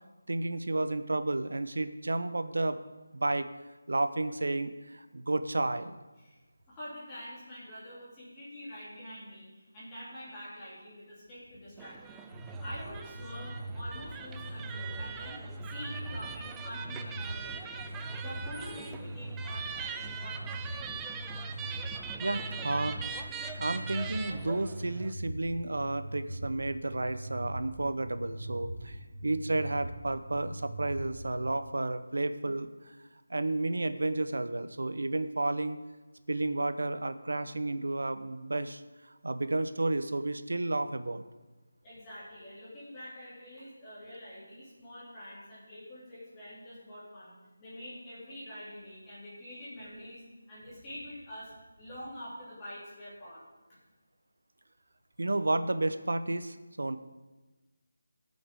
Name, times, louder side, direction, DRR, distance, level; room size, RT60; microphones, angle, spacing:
voice 1, 0.3-2.8 3.1-3.5 3.9-6.0 22.2-23.0 23.6-33.0 33.3-35.8 36.3-41.2 55.2-57.0, right 2 dB, 80° right, 11 dB, 0.7 m, -32 dB
voice 2, 6.7-12.2 12.6-17.8 18.2-20.7 41.8-53.4 53.7-53.8, equal, 10° left, -10 dB, 2.6 m, -46 dB
sound 1, 11.8-25.1, right 6 dB, 5° right, 0.3 m, -42 dB
sound 2, 12.3-31.3, right 1 dB, 30° right, 1.3 m, -41 dB
18.5 x 6.4 x 3.5 m, 1.2 s
figure-of-eight pair, 175°, 0 cm